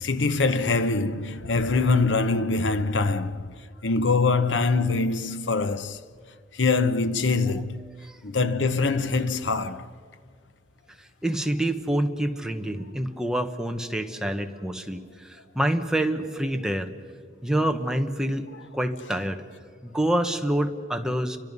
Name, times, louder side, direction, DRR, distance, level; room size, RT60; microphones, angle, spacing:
voice 1, 0.0-3.5 3.8-6.0 6.5-7.9 8.2-9.9, left 3 dB, 85° left, 0.9 m, -24 dB
voice 2, 11.0-16.9 17.4-19.4 19.8-21.4, right 1 dB, 5° right, 1.1 m, -27 dB
30.0 x 24.5 x 5.4 m
head